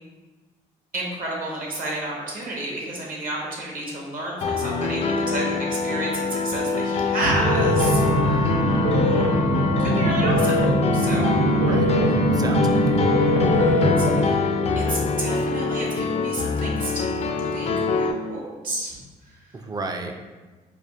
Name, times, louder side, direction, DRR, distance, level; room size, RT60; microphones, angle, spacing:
voice 1, 0.9-8.0 8.3-8.6 9.0-11.3 13.7-14.5 14.7-17.1 17.5-19.0 19.2-19.3, right 1 dB, 55° right, -3 dB, 1.3 m, -31 dB
Piano, 4.4-18.1, left 4 dB, 40° left, 0.4 m, -25 dB
Wind instrument woodwind instrument, 5.6-9.7, left 2 dB, 90° left, 0.6 m, -38 dB
sound 1, 7.2-14.1, right 1 dB, 80° right, 0.7 m, -21 dB
voice 2, 11.6-13.0 19.5-20.2, right 3 dB, 25° right, 4 dB, 0.4 m, -32 dB
4.9 x 2.4 x 2.5 m, 1.3 s
supercardioid pair, 65°, 17 cm